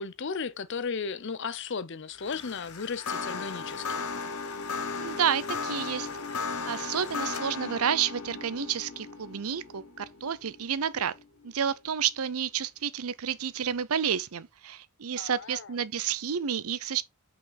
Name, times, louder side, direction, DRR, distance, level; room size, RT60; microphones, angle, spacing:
voice 1, 0.0-4.1 15.2-15.7, left 5 dB, 55° left, 0.6 m, -35 dB
sound 1, 2.1-11.5, left 4 dB, 85° left, 1.1 m, -36 dB
voice 2, 5.0-6.1 6.7-11.1 11.4-17.0, right 8 dB, 80° right, 0.7 m, -30 dB
5.9 x 5.6 x 4.0 m
head